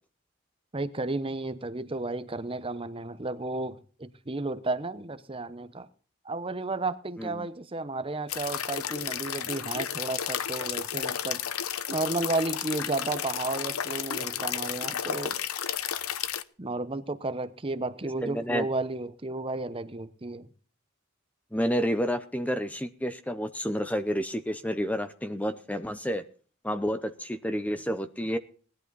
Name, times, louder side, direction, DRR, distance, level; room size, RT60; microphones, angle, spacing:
voice 1, 0.7-5.9 6.2-11.4 11.9-15.4 16.6-20.5, right 2 dB, 25° right, 0.8 m, -33 dB
sound 1, 8.3-16.4, left 9 dB, 85° left, 0.8 m, -32 dB
voice 2, 18.2-18.7 21.5-26.3 26.6-28.4, equal, 5° left, 0.7 m, -30 dB
19.0 x 11.0 x 4.0 m
head